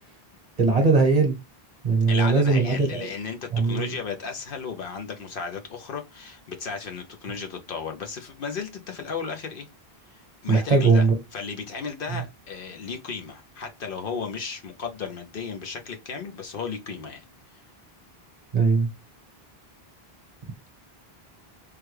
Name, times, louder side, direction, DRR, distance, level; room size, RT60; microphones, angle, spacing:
voice 1, 0.6-1.4 1.8-3.1 3.5-3.9 10.5-11.1 18.5-18.9, right 4 dB, 40° right, 1.0 m, -20 dB
voice 2, 2.1-9.7 10.1-17.2 17.5-17.6, left 5 dB, 65° left, 0.8 m, -35 dB
3.4 x 2.2 x 3.1 m
omnidirectional pair, 1.0 m